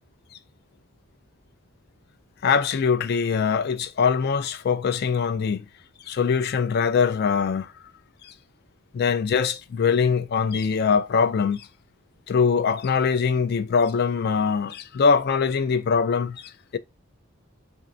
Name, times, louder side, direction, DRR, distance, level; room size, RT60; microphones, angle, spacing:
voice 1, 2.4-5.6 6.1-7.7 8.9-11.7 12.3-16.8, left 5 dB, 50° left, 0.3 m, -22 dB
4.4 x 3.2 x 2.5 m
head